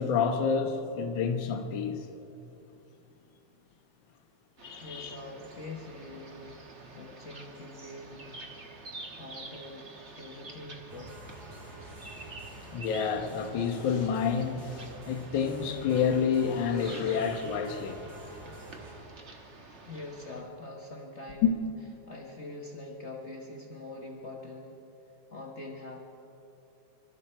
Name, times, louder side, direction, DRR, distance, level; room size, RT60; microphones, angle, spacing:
voice 1, 0.0-2.1 4.6-5.2 12.7-18.0 21.4-21.5, left 6 dB, 55° left, 1.4 m, -29 dB
sound 1, 4.6-20.4, right 2 dB, 40° right, 0.9 m, -48 dB
voice 2, 4.8-6.6 6.9-8.5 8.9-9.9 10.2-11.2 19.8-21.5 22.1-24.8 25.3-26.0, left 2 dB, 80° left, 0.6 m, -44 dB
sound 2, 10.9-18.9, right 2 dB, 85° right, 5.1 m, -48 dB
25.0 x 13.0 x 4.4 m
omnidirectional pair, 3.3 m